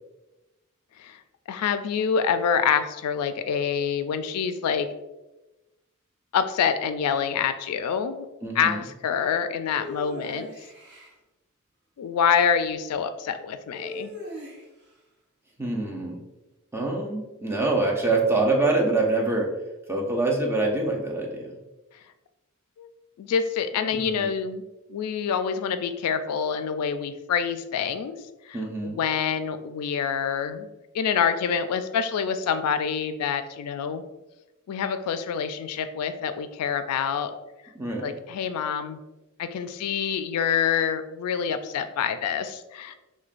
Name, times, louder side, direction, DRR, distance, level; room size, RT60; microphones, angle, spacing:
voice 1, 1.5-4.9 6.3-8.3 8.6-10.5 12.0-14.1 22.8-22.9 23.2-24.6 24.9-28.2 28.5-28.6 28.8-30.7 30.9-34.0 34.7-37.3 38.0-39.0 39.4-42.9, left 7 dB, 85° left, 10 dB, 0.3 m, -26 dB
voice 2, 8.4-8.8 15.6-16.2 16.7-19.5 19.9-21.6 23.9-24.3 28.5-29.0 37.8-38.1, right 2 dB, 10° right, -1 dB, 0.5 m, -25 dB
sound 1, 9.8-11.1 13.7-14.9, left 1 dB, 50° right, 1.0 m, -39 dB
6.1 x 2.2 x 2.5 m, 1.0 s
head